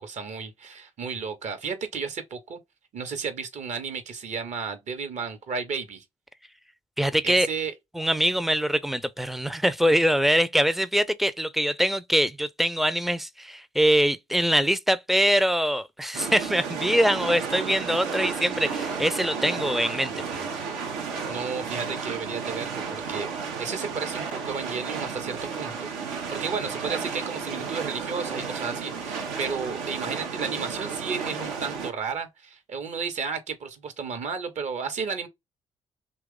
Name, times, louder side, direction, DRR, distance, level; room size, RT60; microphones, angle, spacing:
voice 1, 0.0-2.6 2.9-6.0 7.2-7.7 21.3-23.3 23.6-35.3, right 5 dB, 55° right, 0.9 m, -33 dB
voice 2, 7.0-7.5 7.9-20.5, equal, ahead, 0.4 m, -23 dB
sound 1, 16.1-31.9, right 5 dB, 80° right, 0.7 m, -33 dB
3.0 x 2.3 x 3.6 m
hypercardioid pair, 45°, 14 cm